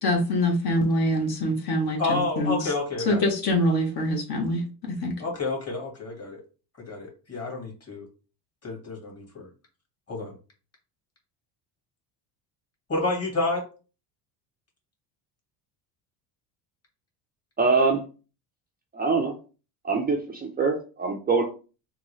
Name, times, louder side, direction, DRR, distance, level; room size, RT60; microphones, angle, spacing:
voice 1, 0.0-2.7 3.1-5.1, left 1 dB, 50° left, 2 dB, 1.1 m, -25 dB
voice 2, 2.0-3.3 5.2-6.4 6.9-8.0 8.6-9.5 10.1-10.3 12.9-13.6, left 2 dB, 30° left, 1 dB, 1.8 m, -29 dB
voice 3, 17.6-18.0 18.9-19.3 19.8-21.4, right 4 dB, 20° right, 1 dB, 0.5 m, -23 dB
3.6 x 2.3 x 3.1 m, 0.35 s
supercardioid pair, 95°, 49 cm